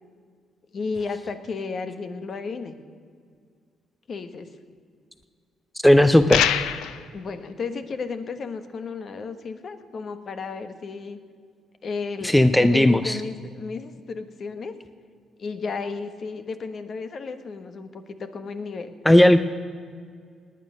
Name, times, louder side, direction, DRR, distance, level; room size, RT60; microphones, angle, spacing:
voice 1, 0.7-2.8 4.1-4.5 7.1-11.2 11.8-14.7 15.4-18.9, left 4 dB, 50° left, 9 dB, 1.3 m, -33 dB
voice 2, 5.8-6.5 12.2-13.2 19.1-19.4, left 1 dB, 5° left, 11 dB, 0.5 m, -16 dB
sound 1, 6.3-7.0, left 11 dB, 90° left, 0.6 m, -23 dB
18.5 x 9.5 x 6.5 m, 2.1 s
cardioid pair, 90°, 0 cm